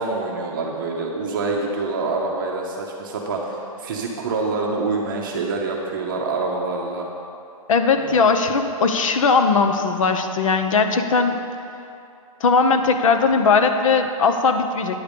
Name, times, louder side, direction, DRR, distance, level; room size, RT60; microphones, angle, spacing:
voice 1, 0.0-7.1 8.0-8.2, right 3 dB, 35° right, -1 dB, 0.8 m, -26 dB
voice 2, 7.7-11.4 12.4-15.0, left 4 dB, 65° left, 7 dB, 0.8 m, -19 dB
9.7 x 6.8 x 5.2 m, 2.6 s
hypercardioid pair, 175°, 19 cm